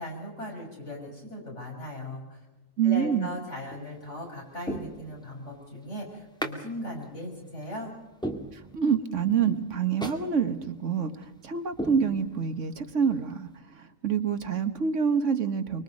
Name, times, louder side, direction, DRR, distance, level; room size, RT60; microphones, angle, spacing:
voice 1, 0.0-2.4 2.8-7.9, left 1 dB, 60° left, -1 dB, 7.0 m, -38 dB
voice 2, 2.8-3.3 8.7-13.5 13.8-15.8, right 7 dB, 65° right, 9 dB, 1.5 m, -26 dB
sound 1, 3.7-4.0 4.6-5.5 6.4-6.6 7.0-7.1 7.6-7.7 8.2-9.1 9.4-9.5 10.0-10.3 10.6-10.7 11.2-11.4 11.8-12.7 13.0-13.1, right 1 dB, 5° left, 1.9 m, -36 dB
24.5 x 23.0 x 5.3 m, 1.1 s
omnidirectional pair, 1.4 m